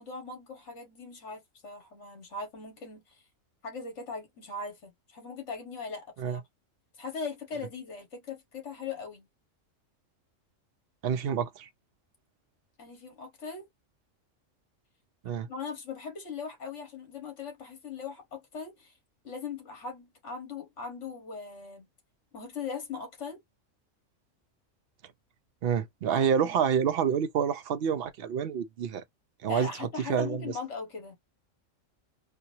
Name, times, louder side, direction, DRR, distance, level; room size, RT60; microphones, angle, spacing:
voice 1, 0.0-3.2 3.6-6.4 7.0-9.3 12.8-13.7 15.5-18.9 19.2-21.8 22.3-23.4 26.1-26.6 29.5-31.2, left 5 dB, 65° left, 1.8 m, -40 dB
voice 2, 11.0-11.7 15.2-15.5 25.6-29.0 29.4-30.5, right 8 dB, 60° right, 0.7 m, -28 dB
4.4 x 2.3 x 2.7 m
omnidirectional pair, 1.3 m